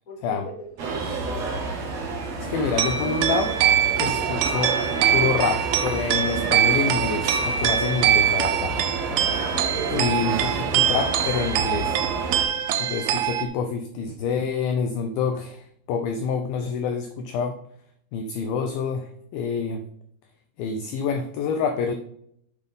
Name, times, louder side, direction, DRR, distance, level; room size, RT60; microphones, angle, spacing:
voice 1, 0.0-1.7 9.8-10.7, left 1 dB, 30° left, -1 dB, 1.6 m, -41 dB
sound 1, 0.8-12.4, right 3 dB, 50° right, 2.2 m, -30 dB
voice 2, 2.4-3.6 4.0-4.8 5.1-8.8 9.9-12.0 12.8-17.6 18.1-19.9 20.6-22.0, left 5 dB, 80° left, 7 dB, 2.2 m, -27 dB
sound 2, 2.4-13.5, right 10 dB, 85° right, 2.8 m, -23 dB
8.4 x 5.3 x 5.3 m, 0.68 s
omnidirectional pair, 4.9 m